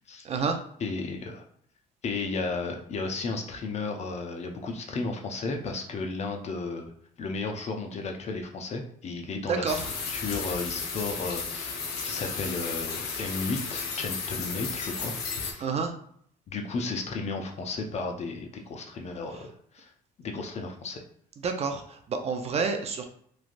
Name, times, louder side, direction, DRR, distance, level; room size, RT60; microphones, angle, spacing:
voice 1, 0.2-0.6 9.5-9.8 15.6-15.9 21.4-23.0, right 5 dB, 40° right, 5 dB, 0.4 m, -29 dB
voice 2, 0.8-1.4 2.0-6.9 7.2-15.1 15.5-15.7 16.5-19.9 20.2-21.0, left 3 dB, 40° left, 3 dB, 0.5 m, -34 dB
sound 1, 9.7-15.5, left 5 dB, 80° left, 0.7 m, -34 dB
3.2 x 2.3 x 2.5 m, 0.63 s
cardioid pair, 110°, 17 cm